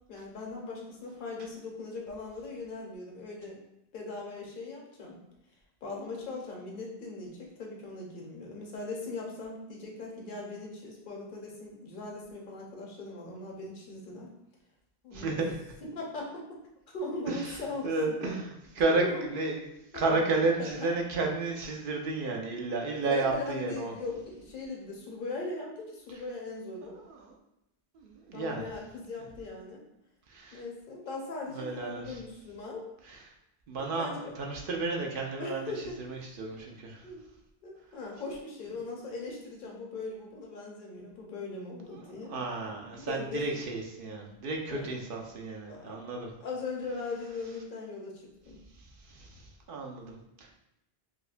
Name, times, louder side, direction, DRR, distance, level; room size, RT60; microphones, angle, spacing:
voice 1, 0.1-3.6 3.9-5.2 5.8-14.3 15.0-15.4 15.9-16.6 16.9-18.3 18.9-19.2 19.9-20.7 23.0-27.0 28.3-29.8 30.5-32.8 33.8-34.2 35.4-36.0 37.0-37.2 37.6-42.3 43.0-43.5 44.7-44.9 45.7-46.0 46.4-48.6, left 3 dB, 55° left, -1 dB, 0.9 m, -39 dB
voice 2, 15.1-15.6 17.3-17.6 17.8-19.6 19.9-23.9 26.9-27.3 27.9-28.6 30.3-30.6 31.5-32.2 33.0-33.2 33.7-35.7 36.0-37.1 42.2-46.3 49.1-50.6, right 3 dB, 60° right, 1 dB, 0.7 m, -32 dB
4.8 x 2.1 x 2.4 m, 0.87 s
omnidirectional pair, 1.1 m